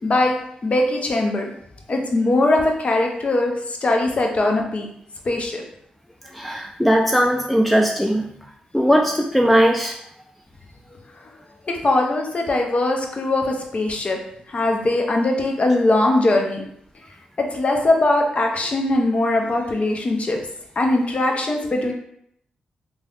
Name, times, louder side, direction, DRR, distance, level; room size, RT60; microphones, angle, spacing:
voice 1, 0.0-0.4 0.6-1.4 1.9-4.9 5.3-5.6 11.7-14.2 14.5-16.6 17.4-20.4 20.8-21.9, left 2 dB, 45° left, 2 dB, 0.6 m, -20 dB
voice 2, 6.3-8.3 8.7-10.0, equal, 5° left, 1 dB, 0.4 m, -18 dB
3.2 x 2.7 x 2.4 m, 0.71 s
supercardioid pair, 45°, 3 cm